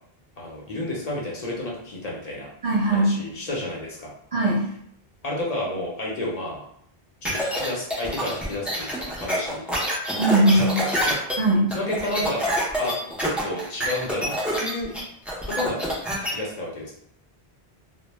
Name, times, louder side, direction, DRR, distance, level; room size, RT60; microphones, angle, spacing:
voice 1, 0.4-2.5 2.9-4.1 5.2-6.6 7.2-9.8 10.5-11.2 11.7-14.9 15.4-15.9 16.3-16.9, left 1 dB, 45° left, -4 dB, 0.6 m, -31 dB
voice 2, 2.6-3.1 4.3-4.6 10.2-10.8 11.4-11.7, right 1 dB, 35° right, -9 dB, 0.9 m, -19 dB
sound 1, 7.3-16.3, equal, ahead, 0.3 m, -27 dB
2.1 x 2.0 x 3.1 m, 0.70 s
omnidirectional pair, 1.0 m